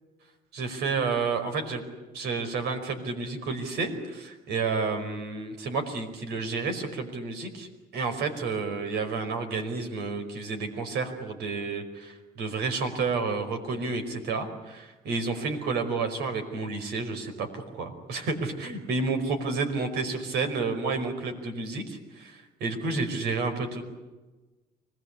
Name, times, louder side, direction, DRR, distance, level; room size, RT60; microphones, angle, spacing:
voice 1, 0.5-1.8 2.1-23.8, right 4 dB, 75° right, 7 dB, 5.2 m, -30 dB
26.0 x 20.0 x 8.5 m, 1.2 s
cardioid pair, 110°, 17 cm